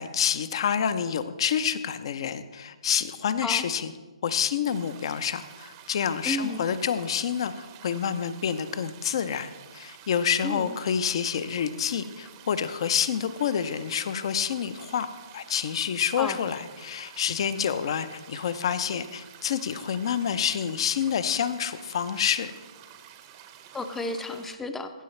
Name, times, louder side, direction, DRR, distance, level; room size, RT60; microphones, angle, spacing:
voice 1, 0.0-3.9 4.2-15.1 15.3-22.5, left 8 dB, 50° left, 12 dB, 0.6 m, -28 dB
sound 1, 4.6-24.6, right 10 dB, 30° right, 0.8 m, -50 dB
voice 2, 6.3-6.7 10.4-10.8 16.2-16.4 23.7-24.9, left 2 dB, 5° left, 8 dB, 0.6 m, -32 dB
14.5 x 7.7 x 3.2 m, 1.3 s
hypercardioid pair, 140°, 3 cm